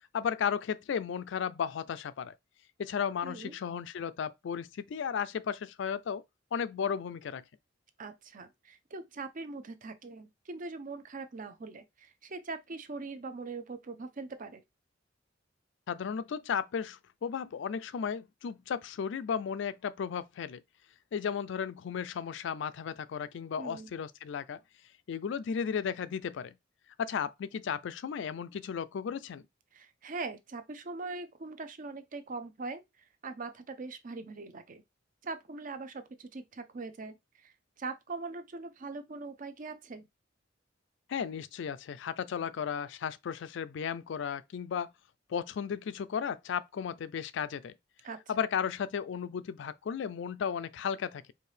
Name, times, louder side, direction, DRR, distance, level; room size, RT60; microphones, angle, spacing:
voice 1, 0.1-2.3 2.8-6.2 6.5-7.4 15.9-20.6 21.1-24.6 25.1-26.5 27.0-29.4 41.1-44.9 45.3-47.7 48.3-51.3, left 7 dB, 70° left, 0.4 m, -34 dB
voice 2, 3.2-3.5 8.0-14.6 23.6-23.9 29.7-32.8 33.2-34.8 35.2-40.1 48.0-48.2, right 3 dB, 45° right, 0.6 m, -41 dB
4.5 x 2.7 x 3.2 m
head